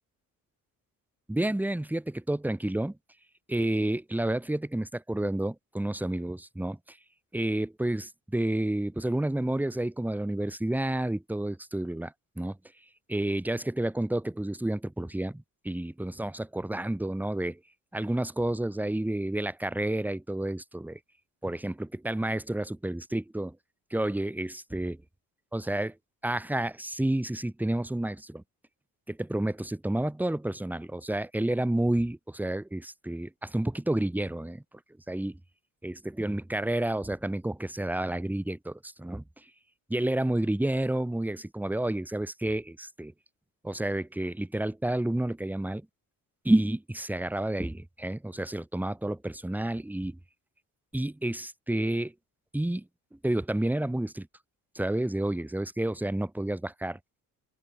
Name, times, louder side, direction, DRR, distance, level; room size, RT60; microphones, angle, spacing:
voice 1, 1.3-3.0 3.5-7.0 7.3-12.6 13.1-17.6 17.9-21.0 21.4-23.6 23.9-25.0 25.5-25.9 26.2-28.4 29.1-34.6 35.1-35.4 35.8-39.4 39.9-43.1 43.6-45.9 46.4-50.2 50.9-52.1 52.5-54.3 54.7-57.0, right 1 dB, 5° right, 1.2 m, -30 dB
open air
cardioid pair, 110°, 35 cm